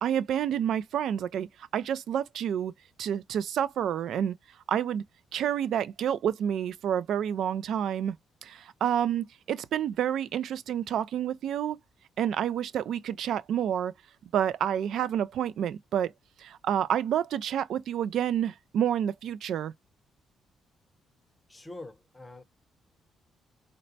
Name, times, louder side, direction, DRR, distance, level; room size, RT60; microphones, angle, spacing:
voice 1, 0.0-1.5 1.7-2.7 3.0-4.4 4.7-5.0 5.3-8.2 8.4-11.8 12.2-13.9 14.3-16.1 16.4-19.7, right 9 dB, 75° right, 0.3 m, -29 dB
voice 2, 21.5-22.4, left 2 dB, 15° left, 0.7 m, -44 dB
4.0 x 2.2 x 2.6 m
cardioid pair, 90°, 0 cm